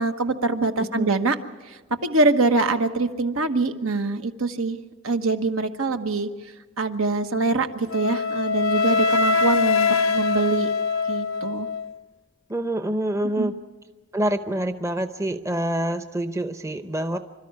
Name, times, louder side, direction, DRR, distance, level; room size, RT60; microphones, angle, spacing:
voice 1, 0.0-1.4 1.7-4.8 5.0-6.3 6.8-10.7 11.1-11.7 13.4-13.5, right 3 dB, 75° right, 7 dB, 1.3 m, -24 dB
voice 2, 0.8-1.2 12.5-13.6 14.1-17.2, right 1 dB, 15° right, 9 dB, 0.7 m, -26 dB
Wind instrument woodwind instrument, 7.9-11.9, left 4 dB, 70° left, 0.7 m, -23 dB
26.5 x 13.0 x 9.6 m, 1.3 s
head